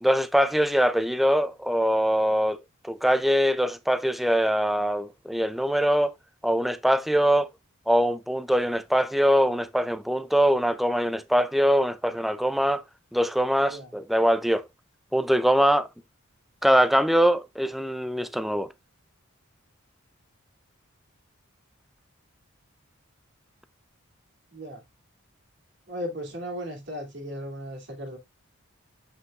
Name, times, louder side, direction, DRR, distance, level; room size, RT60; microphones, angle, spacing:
voice 1, 0.0-2.6 2.8-6.1 6.4-7.5 7.9-12.8 13.1-14.6 15.1-15.9 16.6-18.7, equal, ahead, 0.3 m, -23 dB
voice 2, 13.6-13.9 24.5-24.8 25.9-28.2, equal, 55° right, 2.5 m, -36 dB
7.8 x 5.4 x 2.4 m
head